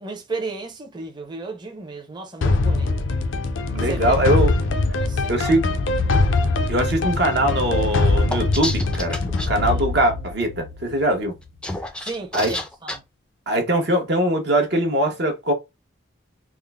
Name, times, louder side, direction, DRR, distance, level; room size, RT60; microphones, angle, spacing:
voice 1, 0.0-2.9 3.8-4.1 5.0-5.5 9.6-9.8 12.0-13.0, right 3 dB, 20° right, 0.7 m, -33 dB
sound 1, 2.4-11.3, left 3 dB, 75° left, 0.5 m, -22 dB
voice 2, 3.7-4.5 5.3-5.6 6.7-11.3 12.3-12.5 13.5-15.5, right 1 dB, 55° right, 1.0 m, -21 dB
sound 2, 8.3-9.5 11.4-13.0, left 1 dB, 5° left, 0.4 m, -29 dB
3.6 x 2.1 x 3.4 m
head